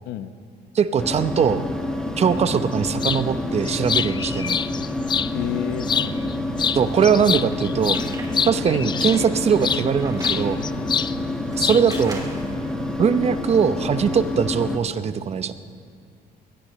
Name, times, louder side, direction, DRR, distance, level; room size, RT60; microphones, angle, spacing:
voice 1, 0.7-1.6 2.2-4.6 6.7-8.0 8.5-10.6 11.6-12.3 13.0-15.5, right 7 dB, 40° right, 12 dB, 0.8 m, -21 dB
sound 1, 1.0-14.8, left 1 dB, 5° left, 1.4 m, -28 dB
sound 2, 3.0-3.2 3.7-5.3 5.8-6.3 6.6-9.9 10.2-11.1 11.4-12.0, left 7 dB, 25° left, 0.3 m, -25 dB
voice 2, 5.3-6.3 8.3-8.5 10.8-11.0, left 11 dB, 90° left, 11 dB, 0.9 m, -31 dB
sound 3, 6.8-8.3 8.7-10.4 11.1-12.5, right 2 dB, 20° right, 3.2 m, -40 dB
22.0 x 17.5 x 3.2 m, 2.4 s
cardioid pair, 110°, 17 cm